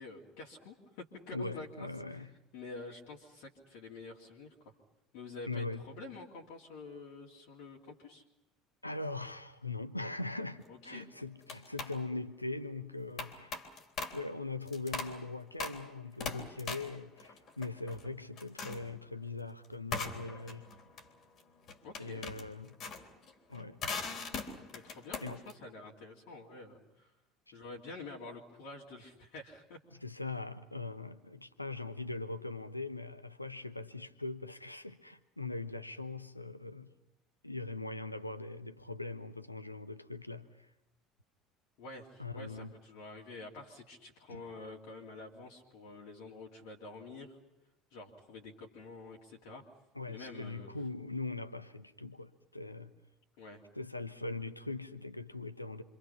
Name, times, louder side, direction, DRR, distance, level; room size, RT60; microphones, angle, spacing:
voice 1, 0.0-2.3 2.5-4.7 5.1-8.2 10.7-11.1 21.8-22.2 24.7-27.1 27.5-29.8 41.8-47.4 47.9-49.6 50.1-50.7 53.4-53.6, left 3 dB, 55° left, 3.0 m, -48 dB
voice 2, 1.3-2.3 5.5-5.8 8.8-13.5 14.1-20.7 22.0-22.8 23.5-23.8 25.2-25.4 30.0-36.9 37.4-40.7 42.2-42.7 44.3-44.4 50.0-52.9 53.7-55.8, left 3 dB, 85° left, 1.0 m, -41 dB
sound 1, 10.6-10.9 11.4-12.0 13.2-14.3 14.7-15.2 15.6-15.9 16.2-18.1 18.4-18.9 19.9-25.5, left 4 dB, 40° left, 3.6 m, -41 dB
27.5 x 26.0 x 5.8 m
figure-of-eight pair, 65°, 0 cm